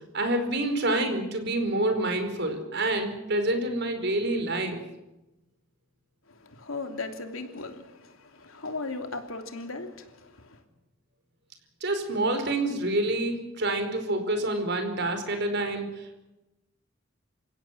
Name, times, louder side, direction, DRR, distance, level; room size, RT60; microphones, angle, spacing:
voice 1, 0.1-4.8 11.8-16.3, right 1 dB, 55° right, 4.8 m, -27 dB
voice 2, 6.3-10.6, left 3 dB, 85° left, 3.0 m, -37 dB
28.5 x 16.5 x 7.6 m
head